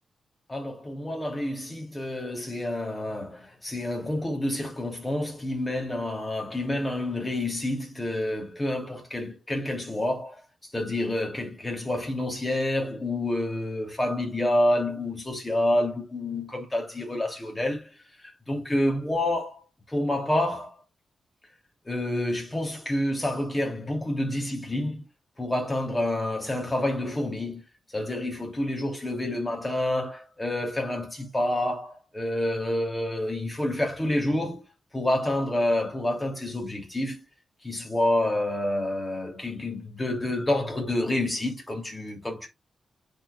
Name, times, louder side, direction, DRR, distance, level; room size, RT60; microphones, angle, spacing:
voice 1, 0.5-10.4 10.7-17.9 18.2-19.6 19.9-20.7 21.9-25.1 25.4-27.6 27.9-34.6 34.9-37.2 37.6-42.5, left 1 dB, 10° left, 3.0 m, -28 dB
10.0 x 4.6 x 2.4 m
wide cardioid pair, 170°, 0 cm